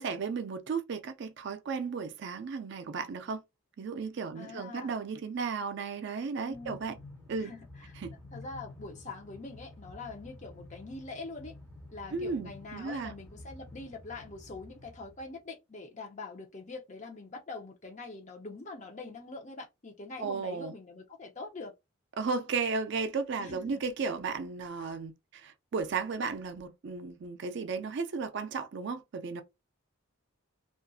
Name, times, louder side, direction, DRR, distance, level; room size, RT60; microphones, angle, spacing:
voice 1, 0.0-3.4 3.8-7.0 7.3-7.5 8.0-8.1 12.1-13.1 20.2-20.7 22.2-29.4, right 5 dB, 55° right, 0.4 m, -34 dB
voice 2, 4.3-4.9 6.4-6.8 7.4-7.9 8.3-11.5 11.9-21.7 23.4-23.8, left 3 dB, 35° left, 0.6 m, -44 dB
Train, 6.5-15.4, left 2 dB, 10° left, 0.9 m, -50 dB
2.6 x 2.3 x 2.3 m
head